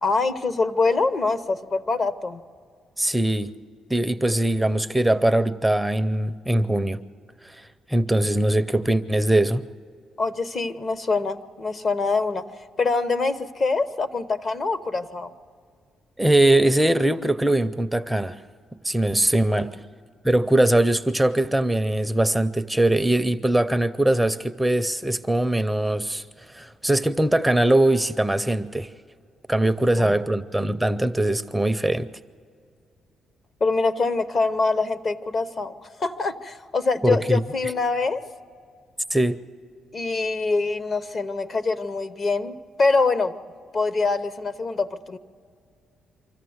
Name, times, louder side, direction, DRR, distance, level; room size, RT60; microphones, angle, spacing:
voice 1, 0.0-2.4 10.2-12.4 12.8-15.3 19.6-19.7 30.0-30.2 33.6-35.7 36.0-38.2 39.9-43.3 43.7-45.2, left 3 dB, 45° left, 13 dB, 0.9 m, -24 dB
voice 2, 3.0-3.6 3.9-7.0 7.4-9.6 16.2-18.4 18.8-19.8 20.2-28.9 29.5-32.1 37.0-37.4 39.1-39.4, right 1 dB, 5° right, 11 dB, 0.5 m, -21 dB
25.5 x 14.0 x 7.9 m, 2.2 s
cardioid pair, 90°, 0 cm